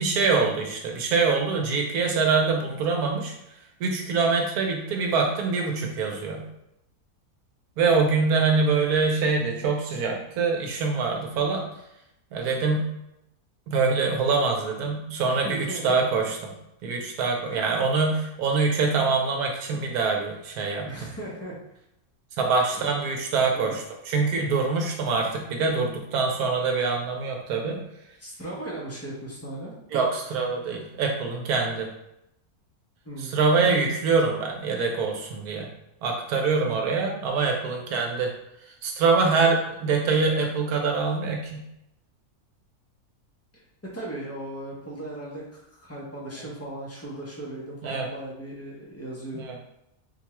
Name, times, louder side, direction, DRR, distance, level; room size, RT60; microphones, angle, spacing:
voice 1, 0.0-3.4 3.8-6.4 7.8-11.6 12.3-12.8 13.7-16.4 16.8-20.9 22.4-27.8 29.9-31.9 33.2-35.7 36.0-38.3 38.6-41.6 47.8-48.1 49.3-49.5, right 4 dB, 85° right, 1 dB, 1.2 m, -24 dB
voice 2, 15.3-16.0 17.5-17.6 18.5-18.6 20.9-21.6 22.8-22.9 23.5-23.7 28.2-29.7 33.0-33.4 36.6-36.8 43.9-49.4, right 1 dB, 15° left, -5 dB, 0.5 m, -37 dB
4.3 x 2.2 x 2.9 m, 0.82 s
omnidirectional pair, 1.6 m